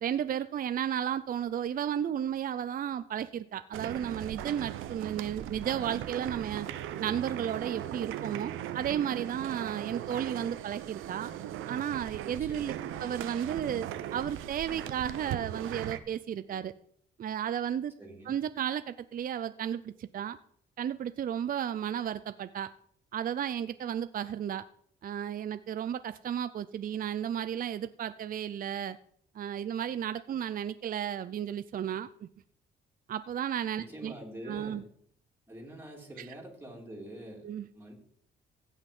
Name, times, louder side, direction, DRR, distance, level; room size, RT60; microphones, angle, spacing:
voice 1, 0.0-6.7 7.0-11.3 11.7-12.7 13.0-16.7 17.2-17.9 18.3-20.4 20.8-22.7 23.1-24.6 25.0-29.0 29.3-32.3 33.1-34.1 34.5-34.8 36.2-36.3 37.4-37.7, right 9 dB, 45° right, 12 dB, 0.5 m, -33 dB
sound 1, 3.7-16.0, right 11 dB, 90° right, 0.8 m, -38 dB
voice 2, 12.3-12.8 18.0-18.3 33.8-34.9 35.5-37.5 37.7-37.9, right 1 dB, 10° right, -1 dB, 3.3 m, -45 dB
16.0 x 5.8 x 5.4 m, 0.63 s
cardioid pair, 90°, 20 cm